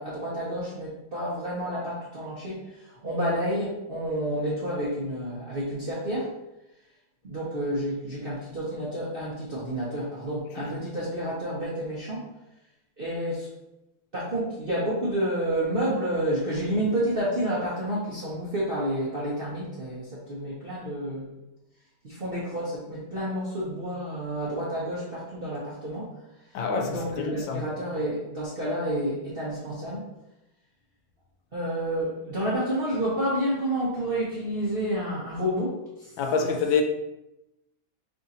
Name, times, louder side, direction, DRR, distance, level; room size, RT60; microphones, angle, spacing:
voice 1, 0.0-6.3 7.2-12.2 13.0-13.5 14.1-21.3 22.0-26.1 26.5-26.6 26.9-30.0 31.5-36.5, right 1 dB, 50° right, 0.7 m, -30 dB
voice 2, 26.5-27.6 36.2-36.8, left 5 dB, 80° left, 1.3 m, -27 dB
3.5 x 2.6 x 4.1 m
omnidirectional pair, 2.1 m